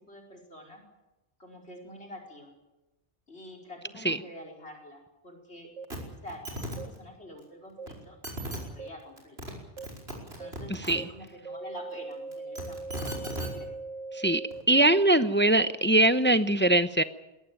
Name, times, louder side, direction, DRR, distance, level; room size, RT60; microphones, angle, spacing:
voice 1, 0.1-0.8 1.4-2.5 3.3-5.7 6.2-9.4 10.2-13.1 13.4-13.7, left 1 dB, 65° left, 3 dB, 5.1 m, -47 dB
sound 1, 5.8-5.9 6.8-6.9 7.8-7.9 8.8-8.9 9.8-9.9 10.4-10.5 11.0-11.1 11.5-14.6, right 3 dB, 85° right, 1.9 m, -40 dB
sound 2, 5.9-6.0 6.3-6.8 7.9-8.0 8.2-8.6 9.2-9.5 9.8-10.9 12.3-13.5 14.5-14.6, right 1 dB, 65° right, 5.4 m, -36 dB
voice 2, 10.7-11.1 14.1-14.4 14.7-17.0, right 1 dB, 10° left, 11 dB, 0.6 m, -22 dB
22.0 x 18.0 x 9.1 m, 1.0 s
omnidirectional pair, 1.2 m